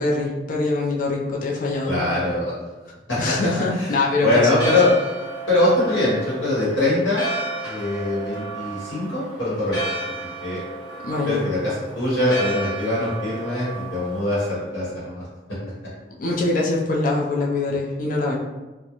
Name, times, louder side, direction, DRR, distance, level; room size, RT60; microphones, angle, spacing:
voice 1, 0.0-2.0 3.2-4.9 11.0-11.4 15.6-15.7 16.2-18.3, left 2 dB, 45° left, -2 dB, 0.4 m, -23 dB
voice 2, 1.9-2.5 3.1-3.3 3.8-4.0 4.2-4.9 5.5-7.2 7.6-9.8 10.4-10.6 11.2-15.3, left 2 dB, 85° left, -8 dB, 1.0 m, -22 dB
Church bell, 4.3-14.5, right 2 dB, 20° left, 0.9 m, -33 dB
2.4 x 2.1 x 2.9 m, 1.1 s
head